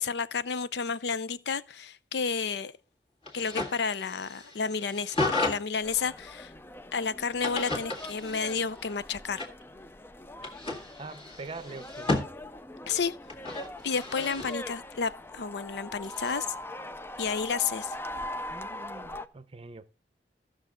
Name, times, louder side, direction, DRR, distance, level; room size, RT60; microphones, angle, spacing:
voice 1, 0.0-2.7 3.3-6.5 6.9-9.5 12.9-13.2 13.8-16.5 17.2-17.9, left 5 dB, 70° left, 0.6 m, -31 dB
sound 1, 3.3-5.6 7.4-8.8 9.4-9.6 10.4-12.3 13.3-14.6 16.0-16.3, left 2 dB, 35° left, 1.9 m, -33 dB
sound 2, 5.8-19.3, left 1 dB, 15° left, 0.4 m, -42 dB
voice 2, 11.0-12.2 18.5-19.8, right 3 dB, 35° right, 0.7 m, -43 dB
15.0 x 6.3 x 3.7 m
head